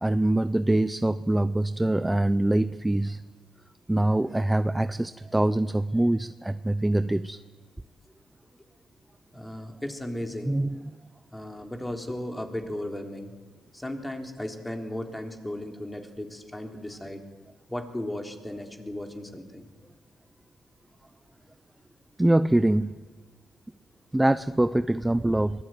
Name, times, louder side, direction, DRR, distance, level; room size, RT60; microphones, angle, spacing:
voice 1, 0.0-3.2 3.9-7.4 10.4-10.8 22.2-22.9 24.1-25.6, right 1 dB, 10° right, 13 dB, 0.6 m, -24 dB
voice 2, 9.3-10.6 11.3-13.3 13.7-17.2 17.7-19.7, left 1 dB, 10° left, 4 dB, 3.7 m, -35 dB
23.5 x 19.5 x 9.3 m, 1.3 s
cardioid pair, 90°, 0 cm